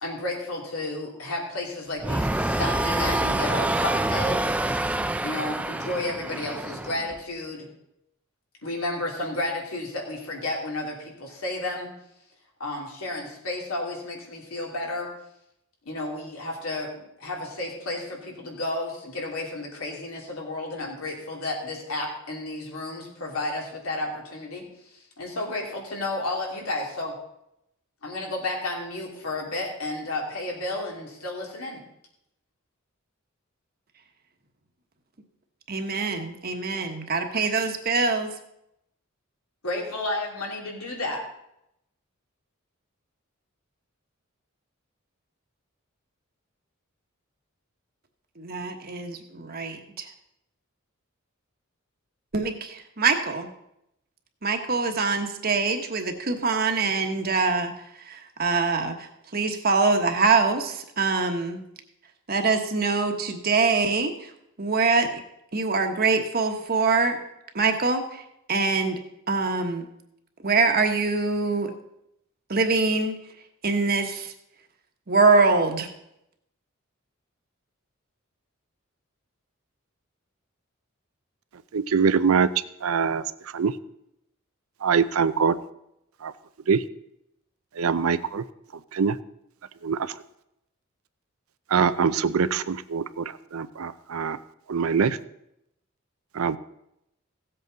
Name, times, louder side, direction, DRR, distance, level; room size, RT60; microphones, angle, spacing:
voice 1, 0.0-4.5 5.2-7.7 8.6-11.9 12.6-15.1 15.8-27.2 28.0-31.8 39.6-41.2, left 2 dB, 90° left, -1 dB, 2.8 m, -32 dB
sound 1, 2.0-7.2, right 1 dB, 5° right, 0.3 m, -26 dB
voice 2, 35.7-38.3 48.4-50.1 52.3-53.5 54.4-57.7 58.1-61.6 62.3-64.3 64.6-65.1 65.5-67.2 67.5-68.2 68.5-69.0 69.3-69.9 70.4-71.7 72.5-73.1 73.6-74.3 75.1-75.9, right 4 dB, 45° right, 5 dB, 1.2 m, -24 dB
voice 3, 81.7-82.5 82.8-83.2 83.5-83.7 84.8-85.6 86.2-86.3 86.7-86.8 87.8-88.4 88.9-89.2 89.8-90.1 91.7-94.4 94.7-95.2 96.3-96.6, right 6 dB, 85° right, 14 dB, 0.5 m, -23 dB
16.0 x 7.9 x 4.0 m, 0.81 s
head